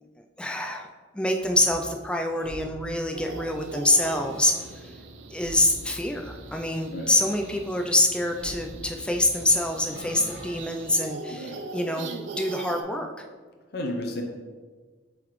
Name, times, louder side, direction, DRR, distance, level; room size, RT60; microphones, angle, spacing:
voice 1, 0.4-0.9 1.1-4.9 5.3-13.1, left 1 dB, 5° left, 3 dB, 0.4 m, -26 dB
sound 1, 1.3-10.9, equal, 15° right, 1.2 m, -45 dB
sound 2, 3.1-12.8, right 3 dB, 75° right, 0.5 m, -41 dB
voice 2, 11.3-11.6 13.7-14.2, left 1 dB, 55° left, 2 dB, 0.7 m, -32 dB
7.6 x 3.9 x 3.1 m, 1.4 s
head